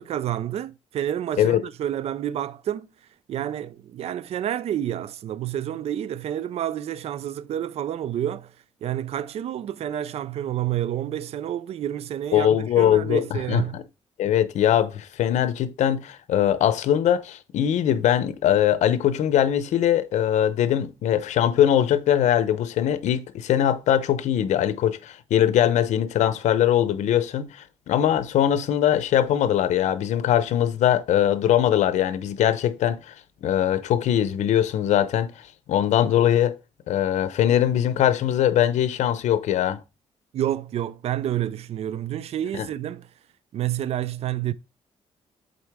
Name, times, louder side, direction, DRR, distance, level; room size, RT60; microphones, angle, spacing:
voice 1, 0.0-13.8 40.3-43.1 43.5-44.5, right 11 dB, 60° right, 0.4 m, -29 dB
voice 2, 12.3-13.8 14.2-33.1 33.4-35.3 35.7-36.6 36.9-39.8 42.5-42.7, left 10 dB, 90° left, 0.7 m, -21 dB
7.8 x 4.2 x 3.5 m
cardioid pair, 125°, 12 cm